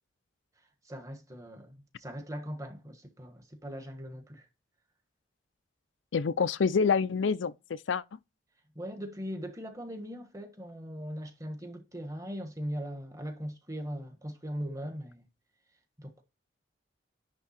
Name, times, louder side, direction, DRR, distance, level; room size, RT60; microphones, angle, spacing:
voice 1, 0.8-4.5 8.7-15.2 16.0-16.2, equal, 15° right, 1.3 m, -40 dB
voice 2, 6.1-8.0, left 5 dB, 80° left, 0.5 m, -27 dB
10.5 x 3.5 x 4.3 m
head